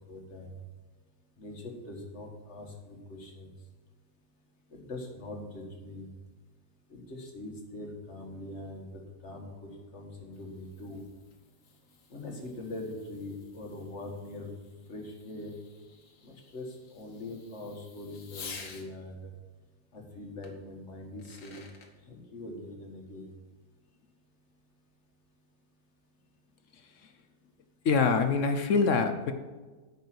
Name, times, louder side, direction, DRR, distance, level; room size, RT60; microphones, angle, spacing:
voice 1, 0.1-0.6 1.4-3.5 4.7-6.1 6.9-11.0 12.1-14.5 14.9-15.6 16.2-19.3 19.9-21.7 22.1-23.3, left 2 dB, 40° left, 2 dB, 1.8 m, -42 dB
Fireworks, 10.1-18.9 20.4-20.5 21.0-21.9, left 5 dB, 85° left, 2.1 m, -51 dB
voice 2, 27.8-29.3, left 5 dB, 65° left, 8 dB, 0.8 m, -24 dB
9.3 x 5.5 x 7.6 m, 1.3 s
omnidirectional pair, 2.0 m